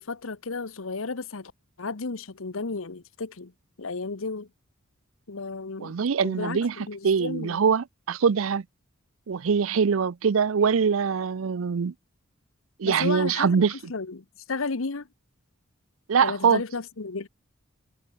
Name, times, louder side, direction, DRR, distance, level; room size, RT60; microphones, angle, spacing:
voice 1, 0.0-1.5 1.8-3.5 3.8-4.5 5.3-6.0 6.2-7.6 12.8-15.1 16.2-17.3, left 4 dB, 80° left, 1.1 m, -33 dB
voice 2, 5.8-6.7 7.0-8.6 9.3-11.9 12.8-13.7 16.1-16.6, right 6 dB, 80° right, 0.5 m, -23 dB
head